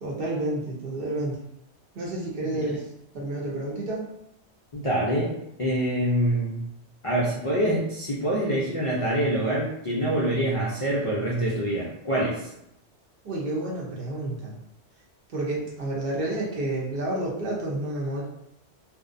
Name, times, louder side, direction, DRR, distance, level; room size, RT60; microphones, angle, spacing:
voice 1, 0.0-1.4 1.9-2.8 3.1-4.0 13.2-14.5 15.3-18.2, right 1 dB, 55° right, -4 dB, 0.8 m, -30 dB
voice 2, 4.7-5.3 5.6-6.6 7.0-12.5, right 1 dB, 60° left, -5 dB, 0.3 m, -25 dB
2.6 x 2.0 x 2.5 m, 0.80 s
omnidirectional pair, 1.2 m